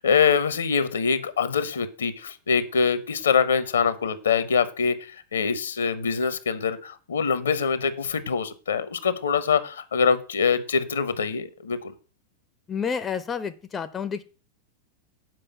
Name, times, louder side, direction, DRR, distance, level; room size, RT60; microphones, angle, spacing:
voice 1, 0.0-11.9, left 6 dB, 70° left, 14 dB, 0.9 m, -24 dB
voice 2, 12.7-14.2, left 6 dB, 20° left, 13 dB, 0.6 m, -29 dB
7.7 x 5.1 x 7.0 m, 0.36 s
figure-of-eight pair, 90°, 0 cm